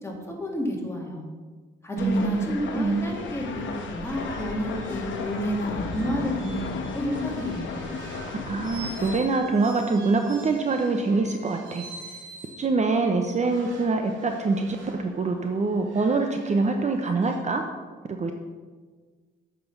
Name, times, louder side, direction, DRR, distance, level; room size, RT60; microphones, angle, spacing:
voice 1, 0.0-1.3 1.8-8.0, equal, 15° left, -1 dB, 2.4 m, -31 dB
sound 1, 2.0-9.2, left 4 dB, 70° left, 1.2 m, -34 dB
voice 2, 2.0-2.4 2.8-3.1 8.5-11.8 12.6-17.6 18.1-18.3, right 3 dB, 35° right, 4 dB, 0.8 m, -24 dB
sound 2, 3.5-12.7 13.3-17.4, right 3 dB, 70° right, 1.9 m, -46 dB
sound 3, 5.6-8.7, left 2 dB, 35° left, 2.2 m, -39 dB
6.8 x 5.9 x 7.2 m, 1.5 s
cardioid pair, 90°, 20 cm